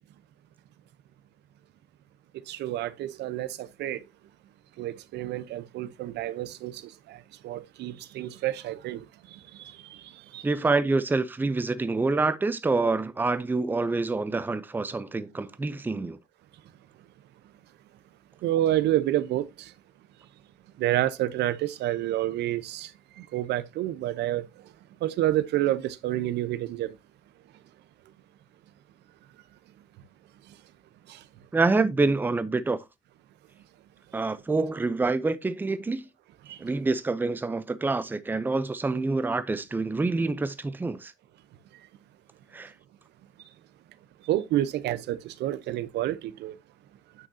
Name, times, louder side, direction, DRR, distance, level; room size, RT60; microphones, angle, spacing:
voice 1, 2.5-4.0 4.8-9.0 9.3-10.5 18.4-19.7 20.8-22.9 23.2-24.4 25.0-26.9 31.1-31.2 36.5-36.6 44.2-46.6, right 13 dB, 85° right, 0.8 m, -29 dB
voice 2, 10.4-16.2 31.5-32.8 34.1-36.1 36.6-41.1 42.5-42.7, right 3 dB, 10° right, 0.6 m, -26 dB
9.3 x 6.2 x 2.8 m
cardioid pair, 150°, 17 cm